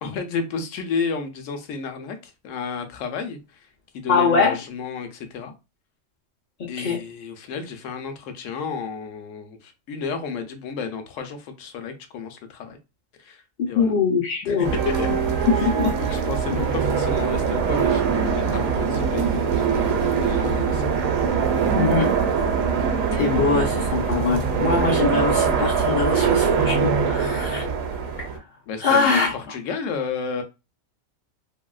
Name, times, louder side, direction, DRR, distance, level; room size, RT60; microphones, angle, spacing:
voice 1, 0.0-3.7 3.9-5.5 6.7-12.8 13.2-13.9 14.4-15.1 15.5-20.8 28.7-30.4, left 5 dB, 70° left, 0.9 m, -32 dB
voice 2, 4.1-4.5 6.8-7.0 13.6-14.7 15.7-15.9 21.7-22.1 23.1-27.7 28.8-29.3, left 5 dB, 55° left, 0.5 m, -22 dB
sound 1, 14.6-28.4, right 6 dB, 80° right, 1.0 m, -22 dB
2.9 x 2.7 x 2.3 m
omnidirectional pair, 1.4 m